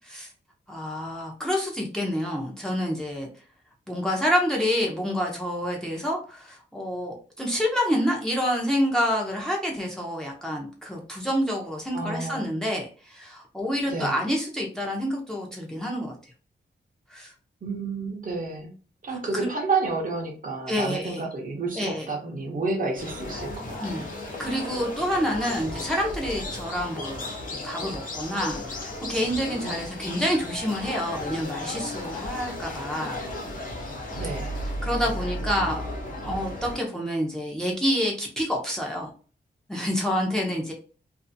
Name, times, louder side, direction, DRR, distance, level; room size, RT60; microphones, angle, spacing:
voice 1, 0.7-3.3 3.9-16.2 17.1-17.3 19.3-19.5 20.7-21.2 21.8-22.1 23.8-24.1 24.4-33.2 34.8-35.8 36.2-39.1 39.7-40.7, equal, 5° left, -1 dB, 0.7 m, -28 dB
voice 2, 11.9-12.5 13.9-14.3 17.6-18.7 19.0-24.1 29.6-29.8 34.2-34.5, right 3 dB, 45° right, 1 dB, 0.7 m, -30 dB
sound 1, 22.9-36.8, left 1 dB, 45° left, 0.8 m, -34 dB
2.6 x 2.6 x 2.6 m, 0.38 s
wide cardioid pair, 150°, 19 cm